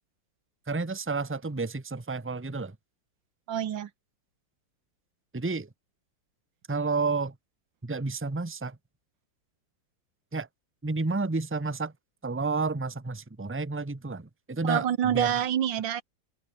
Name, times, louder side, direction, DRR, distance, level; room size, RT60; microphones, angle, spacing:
voice 1, 0.7-2.7 5.3-5.7 6.7-7.3 7.8-8.8 10.3-10.5 10.8-11.9 12.2-15.3, right 3 dB, 10° right, 0.8 m, -30 dB
voice 2, 3.5-3.9 14.6-16.0, right 10 dB, 80° right, 1.9 m, -27 dB
omnidirectional pair, 2.1 m